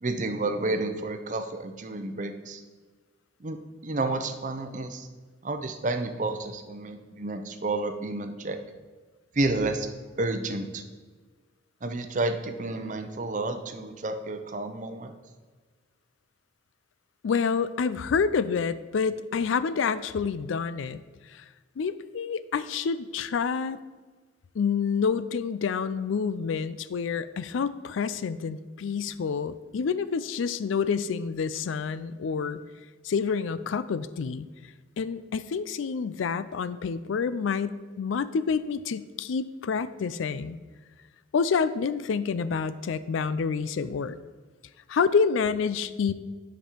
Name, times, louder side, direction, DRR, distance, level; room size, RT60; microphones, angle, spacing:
voice 1, 0.0-2.6 3.4-5.1 5.4-8.6 9.3-9.9 10.1-10.8 11.8-15.1, right 2 dB, 40° right, 7 dB, 0.6 m, -30 dB
voice 2, 17.2-21.0 21.3-21.4 21.8-23.8 24.5-32.6 33.0-34.5 35.0-40.6 41.3-44.2 44.9-46.1, left 5 dB, 85° left, 14 dB, 0.4 m, -28 dB
10.0 x 5.3 x 4.4 m, 1.4 s
head